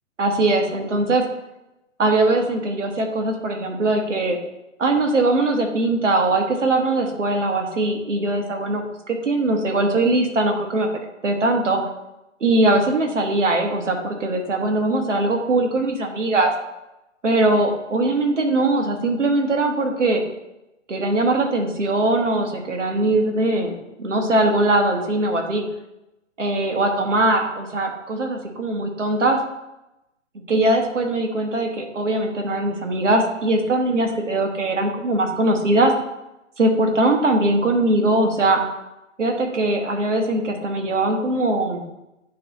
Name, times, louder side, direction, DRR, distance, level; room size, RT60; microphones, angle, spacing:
voice 1, 0.2-1.2 2.0-4.4 4.8-10.9 11.2-11.8 12.4-16.5 17.2-20.2 20.9-25.6 26.4-29.4 30.5-35.9 36.6-38.6 39.2-41.8, right 2 dB, 70° right, 3 dB, 1.5 m, -21 dB
9.8 x 3.4 x 4.1 m, 0.93 s
figure-of-eight pair, 130°, 38 cm